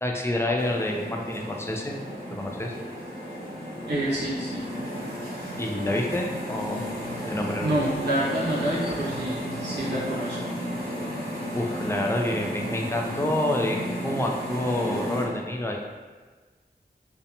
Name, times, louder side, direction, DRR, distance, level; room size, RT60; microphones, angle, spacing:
voice 1, 0.0-2.0 2.3-2.7 5.6-6.8 7.2-7.8 11.5-15.8, left 1 dB, 15° left, 0 dB, 0.3 m, -28 dB
sound 1, 0.6-15.2, equal, 60° right, 1.2 m, -33 dB
voice 2, 3.9-4.6 7.6-10.4, right 1 dB, 85° right, -7 dB, 0.6 m, -27 dB
2.7 x 2.1 x 2.6 m, 1.3 s
wide cardioid pair, 45°, 17 cm